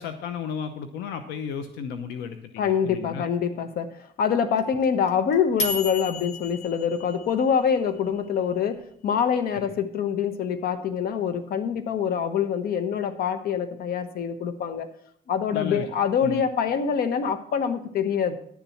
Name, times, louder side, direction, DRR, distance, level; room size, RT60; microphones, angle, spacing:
voice 1, 0.0-3.2 15.5-15.8 16.2-16.4, left 7 dB, 85° left, 9 dB, 0.9 m, -34 dB
voice 2, 2.6-14.9 15.3-18.4, left 7 dB, 65° left, 10 dB, 1.2 m, -25 dB
sound 1, 4.6-7.8, left 2 dB, 40° left, 1.3 m, -33 dB
11.0 x 7.2 x 5.8 m, 0.66 s
cardioid pair, 110°, 17 cm